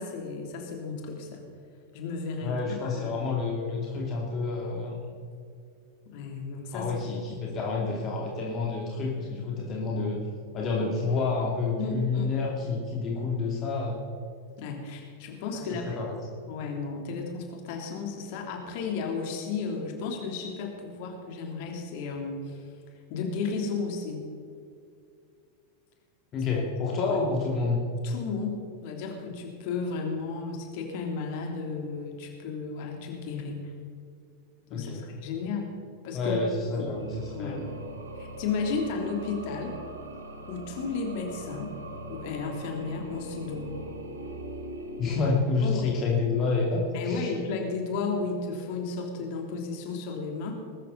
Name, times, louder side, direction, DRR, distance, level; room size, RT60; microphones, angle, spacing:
voice 1, 0.0-1.4 1.9-3.2 6.1-7.0 11.8-12.3 14.6-16.0 16.5-22.7 23.1-24.2 26.6-26.7 27.1-27.2 28.0-33.7 34.7-35.7 36.0-36.3 36.7-36.9 37.3-37.6 38.2-39.8 40.5-41.7 42.1-43.8 45.0-45.2 45.6-45.9 46.9-50.6, left 4 dB, 45° left, 2 dB, 3.1 m, -33 dB
voice 2, 2.4-5.0 6.7-10.2 10.5-14.0 15.5-16.2 26.3-27.8 34.7-35.1 36.1-37.7 45.0-47.3, left 4 dB, 30° left, -1 dB, 2.6 m, -29 dB
sound 1, 36.8-45.9, right 1 dB, 70° right, 2.1 m, -41 dB
21.5 x 13.0 x 4.1 m, 2.4 s
figure-of-eight pair, 90°, 0 cm